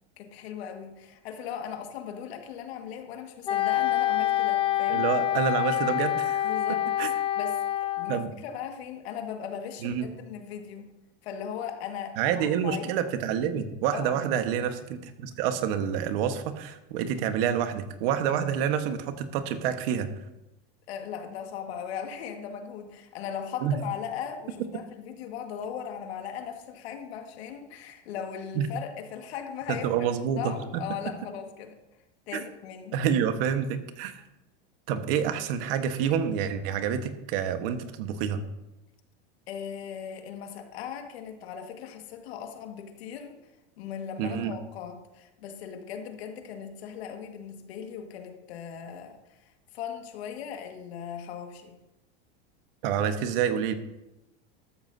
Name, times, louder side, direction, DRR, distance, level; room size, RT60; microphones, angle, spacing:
voice 1, 0.2-5.1 6.4-6.8 7.4-10.9 11.2-13.0 13.9-14.2 20.9-30.1 30.4-31.8 32.3-33.0 39.5-43.4 43.8-51.8, left 8 dB, 80° left, 4 dB, 1.9 m, -38 dB
Wind instrument woodwind instrument, 3.5-8.3, left 13 dB, 20° left, 0.4 m, -26 dB
voice 2, 4.9-6.5 7.0-7.1 8.1-8.3 9.8-10.1 12.2-20.1 23.6-23.7 28.5-28.7 29.7-30.8 32.9-34.1 34.9-38.4 44.2-44.5 52.8-53.7, right 8 dB, 65° right, 8 dB, 1.4 m, -28 dB
13.5 x 13.0 x 2.7 m, 0.96 s
supercardioid pair, 135°, 31 cm